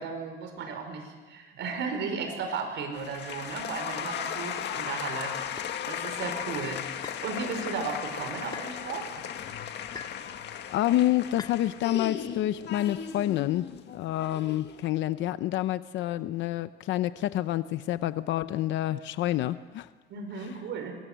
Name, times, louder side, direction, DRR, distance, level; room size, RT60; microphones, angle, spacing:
voice 1, 0.0-9.1 20.1-20.9, right 5 dB, 75° right, 5 dB, 5.3 m, -35 dB
sound 1, 2.9-14.9, left 9 dB, 70° left, 1.9 m, -37 dB
sound 2, 5.6-5.8 7.0-7.3 8.5-8.7 9.9-10.3 11.4-11.6, left 5 dB, 20° left, 2.0 m, -42 dB
voice 2, 10.7-19.9, left 14 dB, 85° left, 13 dB, 0.8 m, -28 dB
26.0 x 21.5 x 8.1 m, 1.4 s
cardioid pair, 120°, 19 cm